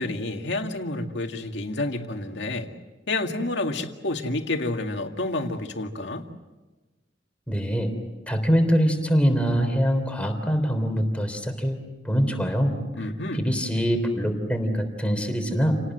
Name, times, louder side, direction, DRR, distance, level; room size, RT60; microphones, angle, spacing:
voice 1, 0.0-2.7 3.1-6.3 13.0-13.5, left 2 dB, 70° left, 4 dB, 2.2 m, -29 dB
voice 2, 7.5-7.9 8.3-15.8, equal, 5° left, 4 dB, 3.5 m, -24 dB
29.5 x 19.0 x 8.0 m, 1.2 s
head